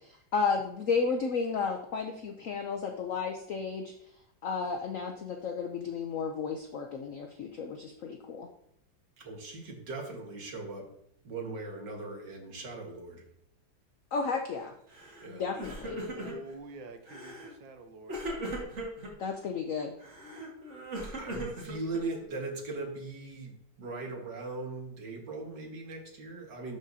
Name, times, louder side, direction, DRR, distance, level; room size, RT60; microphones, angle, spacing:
voice 1, 0.3-3.9 4.4-8.5 14.1-14.7 15.3-16.0 19.2-19.9, left 5 dB, 75° left, 4 dB, 0.7 m, -33 dB
voice 2, 9.2-10.9 11.2-13.2 15.2-15.4 21.2-26.8, right 3 dB, 60° right, 0 dB, 2.1 m, -39 dB
Crying sobbing, 14.9-15.3 15.5-16.6 17.1-17.5 18.1-19.1 20.0-22.3, right 1 dB, 35° right, 2.0 m, -38 dB
voice 3, 15.9-18.2, right 1 dB, 75° right, 7 dB, 1.5 m, -47 dB
11.5 x 5.0 x 2.7 m, 0.71 s
omnidirectional pair, 2.2 m